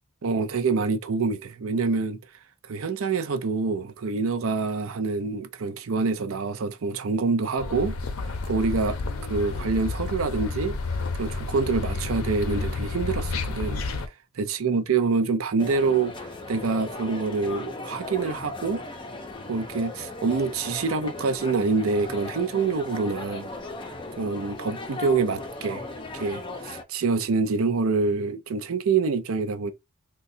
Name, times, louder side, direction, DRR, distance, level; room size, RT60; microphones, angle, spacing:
voice 1, 0.2-2.2 2.7-7.9 8.5-9.0 9.3-10.8 11.1-13.8 14.4-18.8 19.5-23.5 24.2-25.8 26.1-29.7, right 4 dB, 75° right, 0.5 m, -26 dB
sound 1, 7.6-14.1, left 3 dB, 85° left, 0.6 m, -30 dB
sound 2, 15.6-26.8, left 2 dB, 25° left, 0.5 m, -37 dB
3.8 x 2.2 x 2.6 m
head